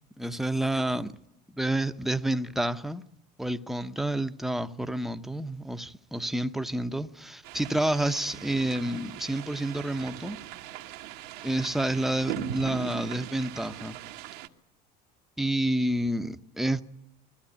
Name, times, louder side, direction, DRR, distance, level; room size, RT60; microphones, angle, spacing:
voice 1, 0.2-1.1 1.5-3.0 3.4-10.4 11.4-14.0 15.4-16.8, right 1 dB, ahead, 0.7 m, -29 dB
sound 1, 7.4-14.5, right 12 dB, 85° right, 1.3 m, -40 dB
21.0 x 14.5 x 9.9 m
supercardioid pair, 115°, 21 cm